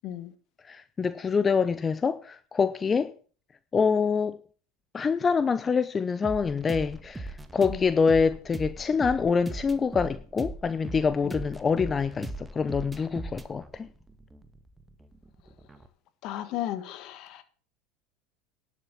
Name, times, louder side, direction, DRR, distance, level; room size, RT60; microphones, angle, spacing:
voice 1, 0.7-3.1 3.7-4.4 4.9-13.9, left 5 dB, 25° left, 0.7 m, -26 dB
sound 1, 6.2-15.9, right 2 dB, 10° right, 1.4 m, -40 dB
voice 2, 16.2-17.4, left 12 dB, 55° left, 1.5 m, -35 dB
11.0 x 7.4 x 7.2 m
hypercardioid pair, 80°, 0 cm